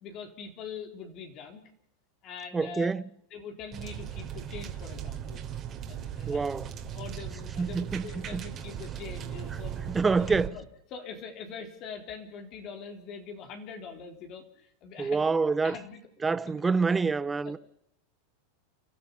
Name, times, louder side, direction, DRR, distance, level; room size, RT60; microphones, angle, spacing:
voice 1, 0.0-1.6 2.2-2.9 3.3-5.4 5.9-6.5 6.9-10.6 10.9-16.0 16.5-16.7 17.4-17.5, left 5 dB, 45° left, 3.7 m, -43 dB
voice 2, 2.5-3.0 6.3-6.7 7.6-8.0 8.3-8.4 9.9-10.5 15.0-15.8 16.2-17.6, right 4 dB, 15° right, 0.8 m, -26 dB
sound 1, 3.7-10.5, right 9 dB, 35° right, 3.4 m, -38 dB
30.0 x 13.0 x 7.1 m
hypercardioid pair, 115°, 0 cm